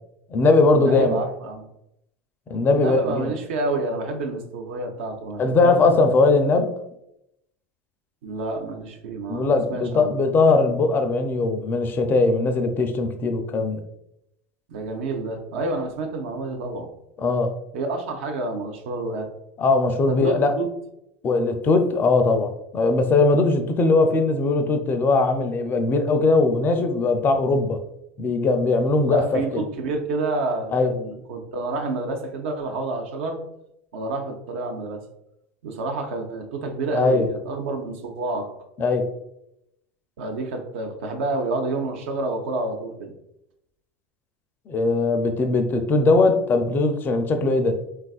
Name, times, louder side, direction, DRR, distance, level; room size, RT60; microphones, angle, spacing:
voice 1, 0.3-1.2 2.5-3.3 5.4-6.7 9.3-13.8 17.2-17.5 19.6-20.5 21.2-27.8 28.2-29.7 30.7-30.9 36.9-37.3 38.8-39.0 44.7-47.7, left 3 dB, 30° left, 6 dB, 0.4 m, -20 dB
voice 2, 0.8-1.6 2.7-6.0 8.2-10.1 14.7-16.9 17.7-19.3 20.1-20.7 29.1-33.4 33.9-35.0 35.6-38.5 40.2-43.1, right 2 dB, 70° right, 3 dB, 0.5 m, -29 dB
3.3 x 2.4 x 2.3 m, 0.81 s
hypercardioid pair, 85°, 7 cm